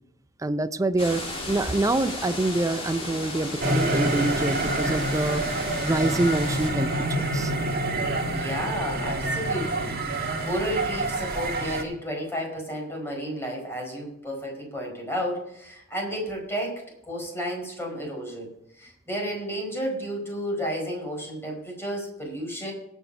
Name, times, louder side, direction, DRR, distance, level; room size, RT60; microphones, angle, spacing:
voice 1, 0.4-5.4 5.8-7.5, right 2 dB, 15° right, 12 dB, 0.5 m, -26 dB
sound 1, 1.0-6.7, left 2 dB, 25° left, 2.9 m, -35 dB
sound 2, 3.6-11.8, right 2 dB, 45° right, 1.6 m, -27 dB
voice 2, 8.2-18.5 18.8-22.7, equal, 10° left, 0 dB, 5.0 m, -32 dB
18.0 x 6.3 x 5.6 m, 0.76 s
head